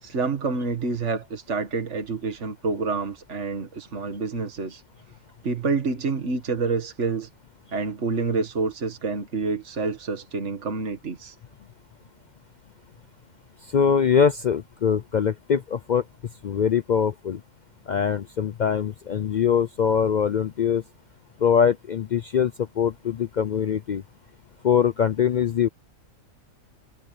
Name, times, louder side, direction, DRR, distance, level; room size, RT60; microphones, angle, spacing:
voice 1, 0.0-4.8 5.4-7.3 7.7-11.4, right 4 dB, 55° right, 2.1 m, -28 dB
voice 2, 13.6-16.0 16.4-17.4 17.9-20.8 21.4-24.0 24.6-25.7, left 7 dB, 80° left, 0.4 m, -23 dB
omnidirectional pair, 1.5 m